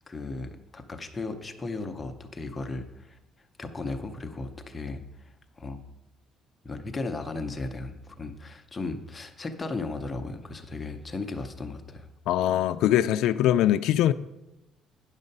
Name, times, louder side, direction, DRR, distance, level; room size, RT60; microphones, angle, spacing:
voice 1, 0.1-3.2 3.6-5.0 5.6-5.8 6.6-12.1, left 3 dB, 15° left, 0.6 m, -35 dB
voice 2, 12.3-14.1, left 12 dB, 70° left, 0.3 m, -22 dB
9.8 x 6.5 x 5.3 m
cardioid pair, 180°, 0 cm